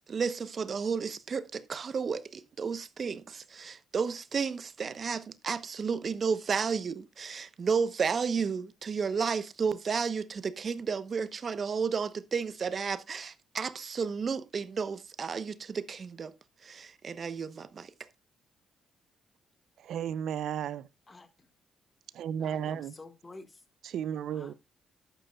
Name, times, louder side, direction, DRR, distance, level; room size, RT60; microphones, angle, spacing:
voice 1, 0.1-16.3 16.6-17.9, right 5 dB, 45° right, 0.9 m, -32 dB
voice 2, 19.8-20.9 22.1-22.9 23.8-24.5, right 9 dB, 75° right, 0.6 m, -34 dB
voice 3, 21.1-21.5 22.4-23.6 24.3-24.5, left 3 dB, 25° left, 1.8 m, -50 dB
12.0 x 8.9 x 2.4 m
cardioid pair, 90°, 0 cm